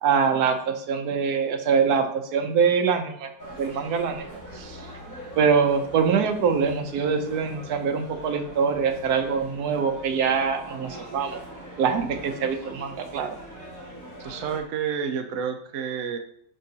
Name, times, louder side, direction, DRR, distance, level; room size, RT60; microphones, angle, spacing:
voice 1, 0.0-3.3 3.6-4.3 4.5-11.4 11.8-13.4, right 6 dB, 90° right, 6 dB, 1.3 m, -24 dB
sound 1, 3.4-14.6, right 1 dB, 15° left, 1.4 m, -42 dB
voice 2, 14.2-16.2, right 7 dB, 65° right, 5 dB, 1.0 m, -29 dB
10.0 x 3.7 x 2.8 m, 0.68 s
omnidirectional pair, 1.6 m